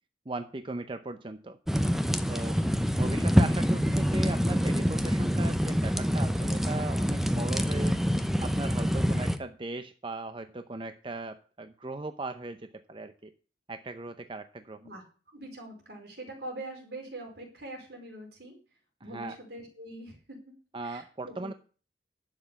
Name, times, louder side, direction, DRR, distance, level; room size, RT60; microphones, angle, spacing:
voice 1, 0.3-1.6 2.3-2.6 3.0-7.9 8.4-13.3 13.7-14.8 19.0-19.4 20.7-21.5, right 2 dB, 30° right, 9 dB, 0.6 m, -38 dB
sound 1, 1.7-9.4, equal, ahead, 0.8 m, -26 dB
voice 2, 15.3-18.6 19.0-20.5 20.8-21.6, right 1 dB, 70° right, 2 dB, 4.8 m, -44 dB
11.5 x 7.6 x 7.1 m, 0.38 s
head